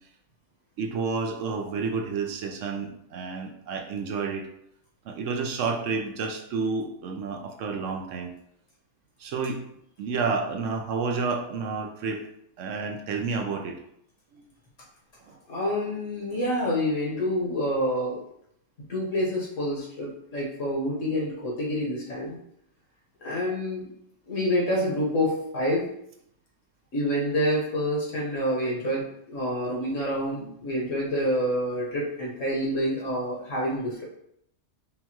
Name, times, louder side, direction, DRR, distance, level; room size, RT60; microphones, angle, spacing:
voice 1, 0.8-4.5 5.0-8.3 9.2-9.6 10.0-12.2 12.6-13.8 14.3-14.5 15.3-15.4, right 4 dB, 75° right, 3 dB, 1.0 m, -30 dB
voice 2, 15.5-18.2 18.9-22.4 23.2-23.8 24.3-25.9 26.9-34.0, equal, 75° left, -4 dB, 1.6 m, -27 dB
5.3 x 2.3 x 2.9 m, 0.74 s
omnidirectional pair, 1.3 m